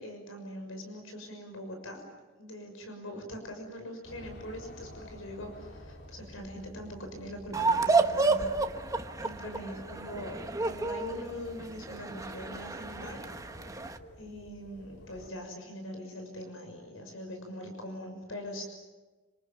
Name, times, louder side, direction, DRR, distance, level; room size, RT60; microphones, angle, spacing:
voice 1, 0.0-2.1 2.4-8.7 9.2-13.2 14.2-18.6, equal, 80° left, 4 dB, 6.3 m, -42 dB
sound 1, 4.0-15.3, equal, 55° left, 3.1 m, -50 dB
sound 2, 7.5-14.0, right 3 dB, 15° right, 1.2 m, -30 dB
28.0 x 26.5 x 7.5 m, 1.2 s
head